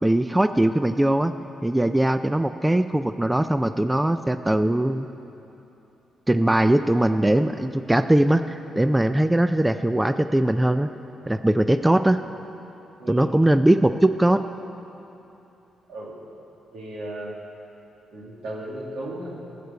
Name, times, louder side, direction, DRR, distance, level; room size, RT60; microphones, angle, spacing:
voice 1, 0.0-1.3 1.6-5.1 6.3-10.9 11.3-12.2 13.1-14.4, right 1 dB, 10° right, 10 dB, 0.3 m, -20 dB
voice 2, 13.0-13.5 15.9-16.3 16.7-17.4 18.1-19.5, right 1 dB, 80° right, -2 dB, 2.1 m, -36 dB
13.5 x 6.7 x 8.2 m, 3.0 s
cardioid pair, 100°, 0 cm